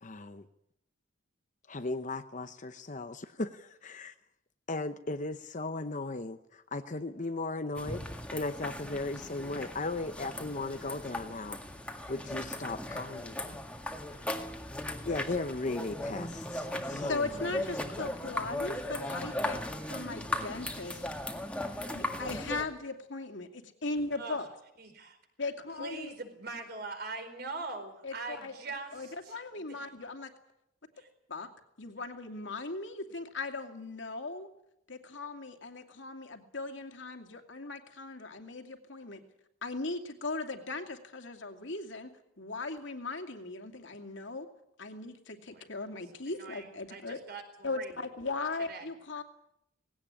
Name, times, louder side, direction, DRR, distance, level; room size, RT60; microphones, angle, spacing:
voice 1, 0.0-0.5 1.7-4.1 4.7-11.6 12.1-13.6 15.0-17.6, left 2 dB, 40° left, 9 dB, 0.8 m, -37 dB
sound 1, 7.8-22.6, left 1 dB, 5° left, 1.9 m, -38 dB
voice 2, 16.9-19.6 19.9-21.0 21.9-24.5 25.4-26.1 28.0-28.5 28.9-30.3 31.3-31.5 31.8-34.5 34.9-39.2 39.6-42.1 42.4-44.5 44.8-47.2 47.6-49.2, left 3 dB, 65° left, 5 dB, 2.6 m, -38 dB
voice 3, 24.8-25.2 25.8-29.4 31.0-31.1 45.5-45.6 46.1-47.9 48.7-48.9, right 3 dB, 50° right, 6 dB, 4.7 m, -42 dB
19.0 x 17.5 x 10.0 m, 0.81 s
head